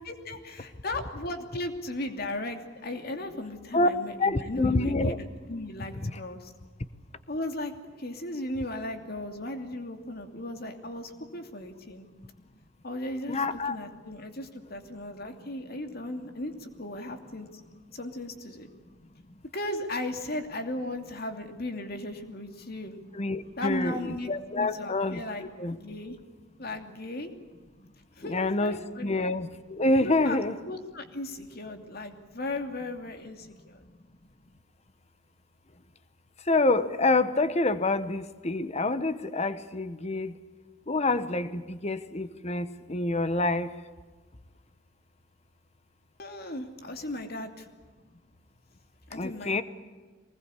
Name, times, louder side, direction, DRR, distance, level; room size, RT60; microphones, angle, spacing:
voice 1, 0.0-5.1 5.5-6.5 7.3-7.7 8.0-12.1 12.8-17.7 17.9-18.7 19.5-23.0 23.6-24.3 24.5-25.4 25.8-26.2 26.6-27.3 28.1-29.2 30.0-30.4 30.6-33.8 46.2-47.7 49.1-49.6, left 1 dB, 55° left, 5 dB, 2.7 m, -36 dB
voice 2, 4.2-5.2 13.3-13.8 23.1-25.8 28.2-30.6 36.5-40.4 40.9-43.7 49.1-49.6, left 2 dB, 35° left, 13 dB, 1.1 m, -27 dB
23.5 x 20.5 x 8.4 m, 1.4 s
head